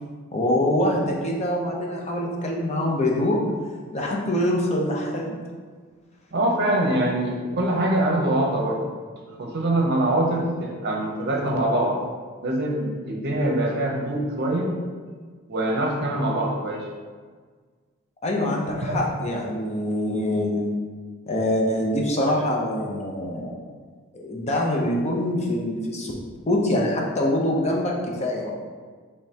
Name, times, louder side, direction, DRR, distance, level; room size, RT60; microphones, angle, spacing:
voice 1, 0.3-3.4 3.9-5.4 18.2-20.7 21.3-23.6 24.1-26.1 26.5-28.5, left 1 dB, 30° left, -1 dB, 0.6 m, -24 dB
voice 2, 6.3-8.9 9.4-12.0 12.4-14.7 15.5-16.8 18.7-19.0, right 1 dB, 50° right, 0 dB, 0.7 m, -24 dB
5.1 x 3.2 x 2.8 m, 1.6 s
head